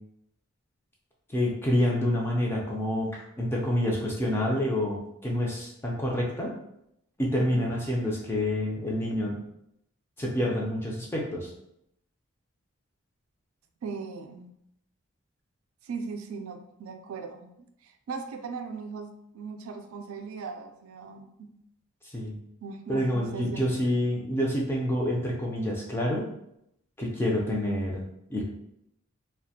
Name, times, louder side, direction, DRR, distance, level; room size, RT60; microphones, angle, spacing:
voice 1, 1.3-6.5 7.2-9.4 10.2-11.5 22.1-22.3 22.9-26.3 27.0-28.0 28.3-28.4, left 1 dB, 10° left, -3 dB, 0.4 m, -27 dB
voice 2, 7.4-7.9 13.8-14.5 15.8-17.5 17.8-21.5 22.6-24.0, right 5 dB, 80° right, 6 dB, 0.3 m, -39 dB
2.4 x 2.1 x 2.7 m, 0.78 s
head